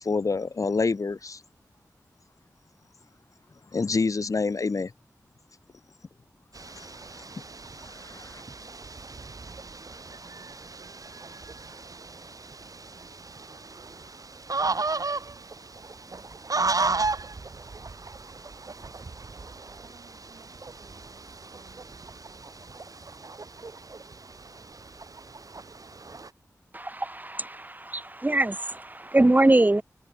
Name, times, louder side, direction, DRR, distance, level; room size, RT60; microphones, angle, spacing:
voice 1, 0.0-1.4 3.7-4.9 6.8-6.9 8.1-8.4, left 4 dB, 55° left, 0.7 m, -27 dB
sound 1, 6.5-26.3, right 3 dB, 65° right, 4.2 m, -35 dB
voice 2, 9.4-12.4 12.9-14.2 14.7-15.7 16.1-17.8 18.8-19.1 19.7-23.8, right 4 dB, 90° right, 7.4 m, -60 dB
voice 3, 26.7-29.8, right 2 dB, 25° right, 1.1 m, -23 dB
wide cardioid pair, 50°, 7 cm